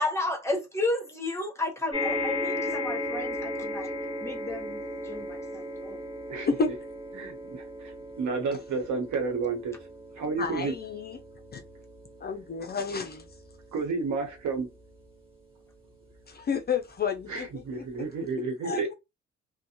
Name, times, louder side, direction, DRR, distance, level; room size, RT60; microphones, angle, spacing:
voice 1, 0.0-3.9 4.2-6.0, left 2 dB, 10° left, 1.0 m, -32 dB
sound 1, 1.9-16.5 17.2-17.3 17.6-17.7, left 1 dB, 20° right, 1.5 m, -36 dB
voice 2, 7.1-9.8 10.1-10.7 13.7-14.7 17.3-19.0, right 4 dB, 70° right, 1.0 m, -31 dB
voice 3, 10.4-11.2 11.5-11.6 12.2-13.3 16.3-17.8 18.6-18.9, left 5 dB, 35° left, 0.4 m, -31 dB
2.4 x 2.1 x 2.8 m
cardioid pair, 90°, 30 cm